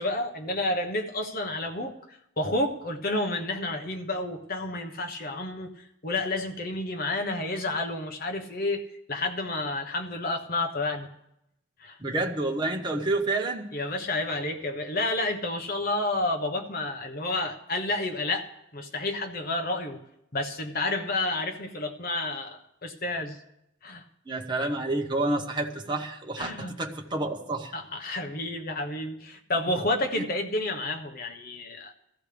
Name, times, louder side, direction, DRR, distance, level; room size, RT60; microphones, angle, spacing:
voice 1, 0.0-11.1 11.8-12.0 13.7-20.0 20.3-23.4 23.8-24.0 26.4-26.7 27.7-31.9, left 2 dB, 45° left, 4 dB, 1.2 m, -30 dB
voice 2, 12.0-13.7 24.3-27.7 28.0-28.1 30.1-30.2, right 2 dB, 25° right, 1 dB, 1.0 m, -29 dB
20.0 x 14.0 x 3.4 m, 0.84 s
head